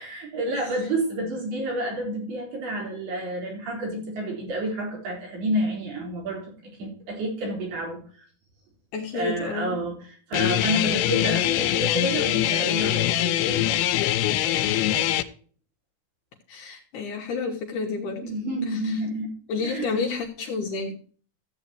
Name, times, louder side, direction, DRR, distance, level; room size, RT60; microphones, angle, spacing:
voice 1, 0.0-8.0 9.1-14.2 14.4-15.1 18.2-19.3 19.6-19.9, right 1 dB, 75° right, -2 dB, 6.1 m, -30 dB
voice 2, 8.9-9.7 16.5-18.3 18.7-19.0 19.5-21.0, left 4 dB, 65° left, 0 dB, 2.3 m, -30 dB
Guitar, 10.3-15.2, left 13 dB, 85° left, 2.6 m, -23 dB
14.5 x 8.2 x 2.9 m, 0.43 s
omnidirectional pair, 4.5 m